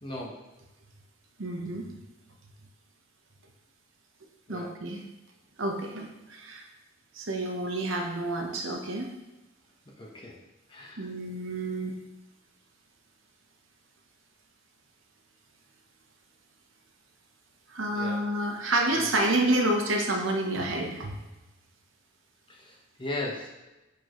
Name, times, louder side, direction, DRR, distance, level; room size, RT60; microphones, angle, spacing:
voice 1, 0.0-0.4 4.5-4.7 10.0-10.4 10.7-11.1 17.9-18.2 18.9-19.1 22.5-23.5, left 1 dB, 25° left, -2 dB, 0.9 m, -38 dB
voice 2, 1.4-1.9 4.5-5.0 5.6-6.6 7.2-9.1 11.0-12.0 17.7-21.1, right 1 dB, 80° right, 3 dB, 0.9 m, -29 dB
6.7 x 4.9 x 3.1 m, 1.0 s
head